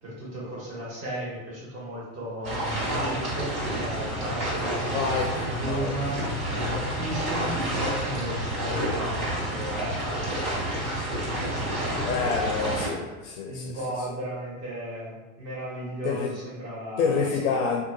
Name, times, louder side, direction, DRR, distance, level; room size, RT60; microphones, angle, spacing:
voice 1, 0.0-11.0 11.4-12.6 13.4-17.4, right 1 dB, 35° right, -6 dB, 1.2 m, -35 dB
sound 1, 2.4-12.9, right 1 dB, 65° right, 1.5 m, -29 dB
voice 2, 4.9-5.9 12.0-13.8 16.0-16.3 17.0-17.8, left 5 dB, 75° left, 2 dB, 0.5 m, -27 dB
2.7 x 2.2 x 2.5 m, 1.2 s
hypercardioid pair, 110°, 44 cm